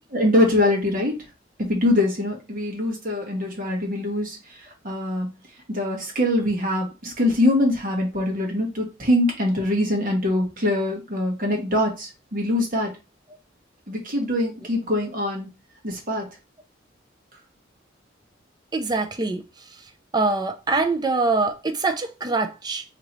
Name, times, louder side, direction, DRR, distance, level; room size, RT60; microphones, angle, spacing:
voice 1, 0.1-1.1 1.6-5.3 5.7-12.9 13.9-15.5 15.8-16.2, left 1 dB, 50° right, 1.3 m, -23 dB
voice 2, 18.7-19.4 20.1-22.8, right 3 dB, 20° right, 0.5 m, -24 dB
4.0 x 2.9 x 3.0 m
head